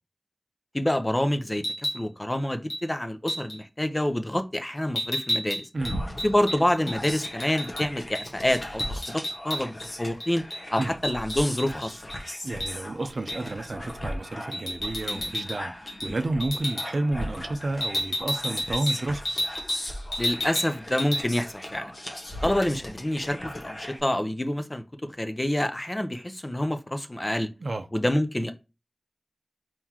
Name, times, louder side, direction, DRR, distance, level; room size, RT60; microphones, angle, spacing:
voice 1, 0.7-1.6 1.9-5.7 6.2-10.4 10.7-12.0 20.2-21.9 22.4-24.8 25.2-27.5 27.9-28.5, left 1 dB, 25° left, 0.7 m, -27 dB
sound 1, 1.5-2.0 2.7-2.8 3.3-3.6 4.9-7.8 8.1-8.3 8.5-9.9 10.2-12.2 12.6-12.7 13.3-13.5 14.5-15.6 15.9-16.1 16.4-16.9 17.8-19.8 20.1-20.7 21.0-21.2, equal, 80° left, 1.8 m, -31 dB
sound 2, 5.8-24.0, equal, 50° left, 1.3 m, -38 dB
voice 2, 12.4-19.2 27.6-27.9, right 2 dB, 85° right, 0.5 m, -31 dB
4.5 x 3.9 x 2.9 m
wide cardioid pair, 50°, 0 cm